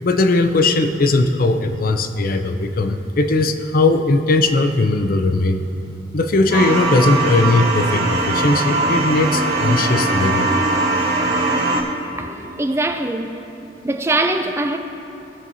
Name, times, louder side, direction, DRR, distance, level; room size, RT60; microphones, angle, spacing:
voice 1, 0.0-5.6 6.1-10.5, left 2 dB, 50° left, 0.5 m, -18 dB
sound 1, 6.5-11.8, right 2 dB, 60° right, 1.3 m, -20 dB
voice 2, 12.2-13.4 13.8-14.8, right 2 dB, 15° right, 0.4 m, -22 dB
17.5 x 7.1 x 2.7 m
head